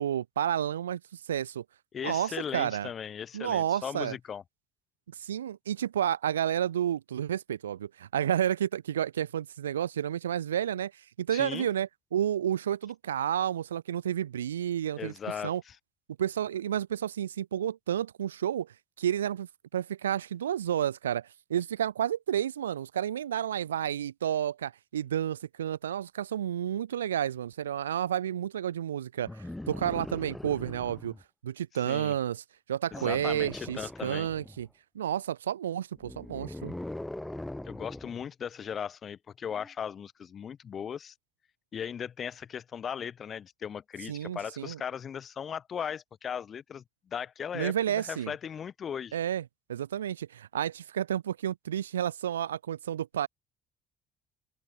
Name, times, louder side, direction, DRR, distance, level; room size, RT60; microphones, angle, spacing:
voice 1, 0.0-1.6 2.0-2.9 3.3-4.2 5.1-10.9 11.2-15.1 15.4-15.6 16.2-18.7 19.0-29.3 29.7-31.1 31.4-32.4 32.7-34.7 34.9-36.7 44.1-44.8 47.5-48.3 49.1-49.4 49.7-53.3, right 10 dB, 75° right, 0.5 m, -31 dB
voice 2, 1.9-4.4 11.3-11.7 15.0-15.8 31.9-32.1 32.9-34.3 37.6-41.1 41.7-49.2, left 8 dB, 40° left, 2.6 m, -38 dB
sound 1, 29.2-31.2 32.9-34.6 35.9-38.2 39.6-39.7, left 1 dB, 10° left, 0.9 m, -41 dB
open air
figure-of-eight pair, 55°, 0 cm